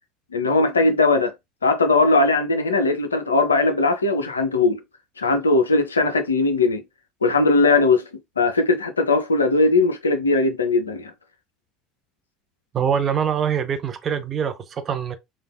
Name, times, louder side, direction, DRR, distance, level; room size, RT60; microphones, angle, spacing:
voice 1, 0.3-1.3 1.6-4.8 5.2-6.8 7.2-8.1 8.4-11.1, left 3 dB, 85° left, 0.4 m, -19 dB
voice 2, 12.7-15.2, right 7 dB, 40° right, 0.5 m, -24 dB
3.3 x 2.2 x 2.2 m
figure-of-eight pair, 65°, 0 cm